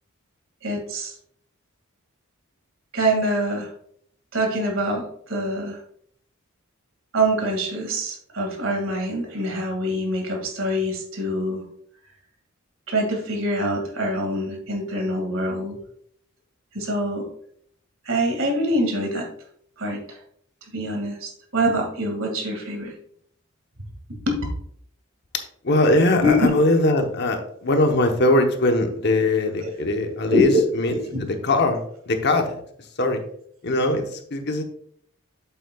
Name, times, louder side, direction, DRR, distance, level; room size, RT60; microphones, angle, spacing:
voice 1, 0.6-1.1 2.9-3.7 4.3-5.8 7.1-11.6 12.9-15.8 16.7-17.3 18.0-19.3 19.8-20.2 20.7-22.9 24.1-24.4 26.2-26.5 30.3-30.6 30.9-31.0, equal, 65° right, 2 dB, 2.1 m, -24 dB
voice 2, 25.3-30.9 31.2-33.2 33.6-34.6, left 2 dB, 50° left, 5 dB, 1.0 m, -21 dB
8.1 x 7.5 x 2.3 m, 0.65 s
head